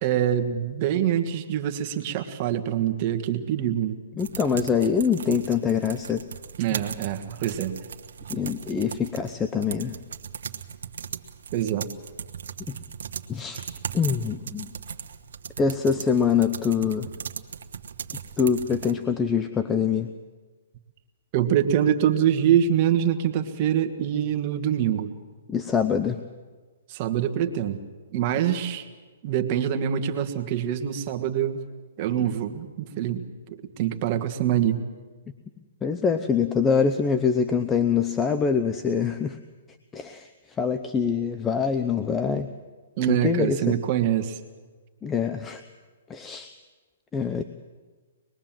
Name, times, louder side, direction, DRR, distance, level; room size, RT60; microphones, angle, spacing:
voice 1, 0.0-4.0 6.6-7.8 11.5-11.9 21.3-25.1 26.9-27.8 28.1-28.9 29.2-31.6 32.0-34.8 43.0-44.4, right 10 dB, 35° right, 7 dB, 1.7 m, -25 dB
voice 2, 4.2-6.2 6.7-6.8 8.3-10.0 12.7-12.8 13.3-13.6 13.9-14.7 15.6-17.1 18.4-20.1 25.5-26.2 35.8-39.4 39.9-40.3 40.6-42.5 43.1-43.8 45.0-45.6 46.1-46.5 47.1-47.4, left 6 dB, 15° left, 9 dB, 0.7 m, -24 dB
sound 1, 4.2-18.9, right 7 dB, 75° right, 1.3 m, -38 dB
25.0 x 21.0 x 7.6 m, 1.4 s
hypercardioid pair, 150°, 0 cm